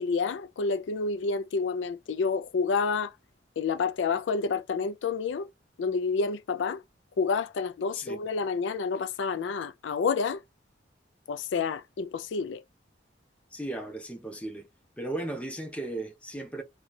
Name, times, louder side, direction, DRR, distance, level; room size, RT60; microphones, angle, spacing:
voice 1, 0.0-3.1 3.6-5.5 5.8-6.8 7.2-10.4 11.3-12.6, left 5 dB, 90° left, 0.4 m, -29 dB
voice 2, 13.5-14.7 15.0-16.6, right 2 dB, 5° left, 0.7 m, -36 dB
3.1 x 2.3 x 4.1 m
head